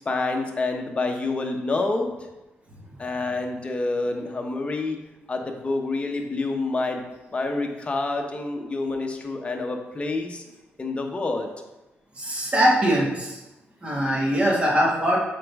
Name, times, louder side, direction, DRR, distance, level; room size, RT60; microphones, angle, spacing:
voice 1, 0.1-2.1 3.0-5.0 5.3-7.0 7.3-10.4 10.8-11.5, left 3 dB, 30° left, 3 dB, 0.9 m, -27 dB
voice 2, 12.1-13.4 13.8-15.2, equal, 30° right, -4 dB, 1.9 m, -22 dB
7.5 x 4.0 x 3.5 m, 1.0 s
cardioid pair, 110°, 4 cm